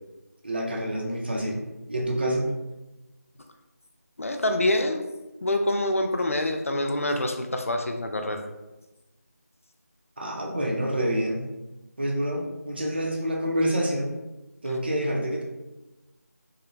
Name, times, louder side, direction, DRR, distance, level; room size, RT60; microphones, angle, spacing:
voice 1, 0.4-1.6 1.9-2.5 10.2-11.4 12.0-14.1 14.6-15.4, equal, 35° right, -1 dB, 0.5 m, -27 dB
voice 2, 4.2-5.0 5.4-8.5, left 1 dB, 55° left, 5 dB, 0.3 m, -26 dB
3.6 x 2.1 x 3.0 m, 1.0 s
figure-of-eight pair, 165°, 9 cm